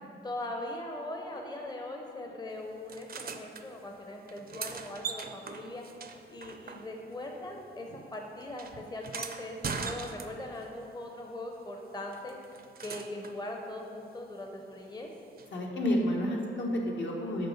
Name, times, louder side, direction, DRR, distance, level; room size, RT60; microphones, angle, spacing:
voice 1, 0.2-5.8 6.3-12.4 12.8-15.1, left 1 dB, 20° left, 2 dB, 0.7 m, -40 dB
sound 1, 2.9-3.6 4.3-7.2 7.5-10.7 12.1-13.4 15.4-15.5, right 5 dB, 45° right, 0.5 m, -41 dB
voice 2, 15.5-17.5, equal, 65° left, -1 dB, 1.2 m, -30 dB
6.8 x 4.4 x 6.5 m, 2.7 s
cardioid pair, 80°, 21 cm